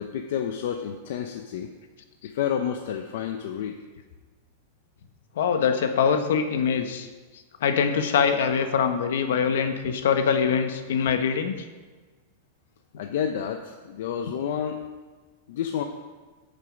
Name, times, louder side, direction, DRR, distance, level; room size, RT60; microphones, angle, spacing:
voice 1, 0.0-1.7 2.2-3.8 13.0-14.8 15.5-15.8, left 8 dB, 55° left, 5 dB, 0.6 m, -30 dB
voice 2, 5.4-7.1 7.6-11.5, left 6 dB, 70° left, 7 dB, 1.2 m, -23 dB
14.5 x 6.7 x 5.2 m, 1.3 s
supercardioid pair, 180°, 0 cm